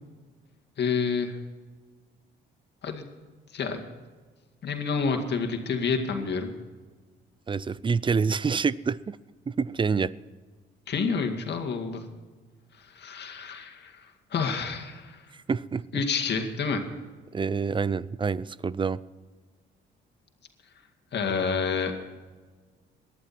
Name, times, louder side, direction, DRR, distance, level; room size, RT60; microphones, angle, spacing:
voice 1, 0.8-1.4 2.8-3.1 3.5-3.8 4.6-6.5 10.9-12.1 12.8-15.3 15.9-16.8 21.1-21.9, left 5 dB, 60° left, 4 dB, 2.2 m, -29 dB
voice 2, 7.5-9.2 9.5-10.1 15.5-16.0 17.3-19.0, right 5 dB, 25° right, 20 dB, 0.5 m, -27 dB
19.0 x 11.5 x 4.3 m, 1.4 s
cardioid pair, 90°, 20 cm